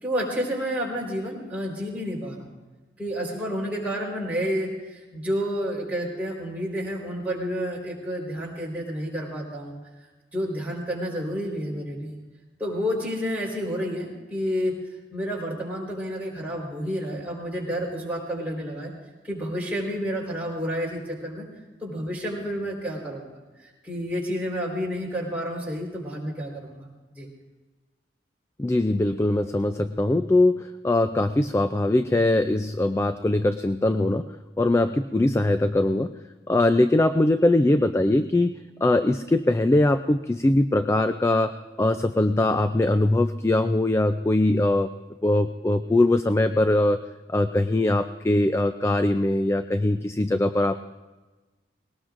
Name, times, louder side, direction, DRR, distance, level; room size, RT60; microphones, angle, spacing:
voice 1, 0.0-2.5 3.0-9.7 10.3-12.2 12.6-14.7 15.1-18.9 19.2-21.5 21.8-26.9 27.1-27.3, equal, 10° right, -4 dB, 4.1 m, -30 dB
voice 2, 28.6-34.2 34.6-36.1 36.5-38.5 38.8-44.9 45.2-47.0 47.3-50.8, left 2 dB, 15° left, 10 dB, 0.3 m, -21 dB
20.5 x 18.5 x 2.5 m, 1.2 s
head